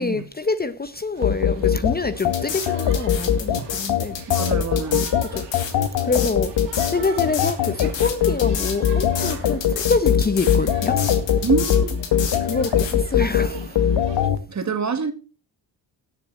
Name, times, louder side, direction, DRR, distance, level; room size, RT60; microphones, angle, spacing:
voice 1, 0.0-4.2 5.3-5.7 6.0-6.5 6.9-11.0 12.4-13.8, left 3 dB, 20° left, 0.8 m, -26 dB
sound 1, 1.2-14.4, left 9 dB, 70° left, 1.3 m, -21 dB
sound 2, 1.2-14.3, right 7 dB, 70° right, 2.4 m, -42 dB
sound 3, 2.2-12.9, left 8 dB, 85° left, 2.5 m, -30 dB
voice 2, 4.3-5.1 11.4-12.0 14.5-15.1, right 5 dB, 40° right, 2.1 m, -25 dB
16.5 x 7.1 x 4.1 m
cardioid pair, 80°, 43 cm